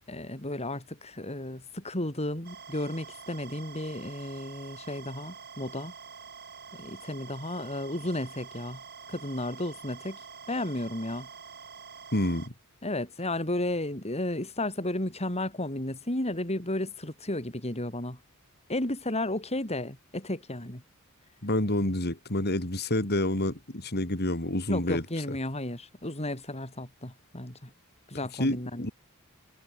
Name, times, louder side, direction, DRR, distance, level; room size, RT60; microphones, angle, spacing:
voice 1, 0.1-5.9 6.8-8.8 9.1-10.2 10.5-11.3 12.8-18.2 18.7-20.8 24.7-27.7 28.1-28.9, left 1 dB, 30° left, 5.5 m, -33 dB
sound 1, 2.4-12.5, right 6 dB, 50° right, 7.2 m, -47 dB
voice 2, 12.1-12.5 21.4-25.4 28.3-28.9, left 1 dB, 50° left, 4.9 m, -28 dB
head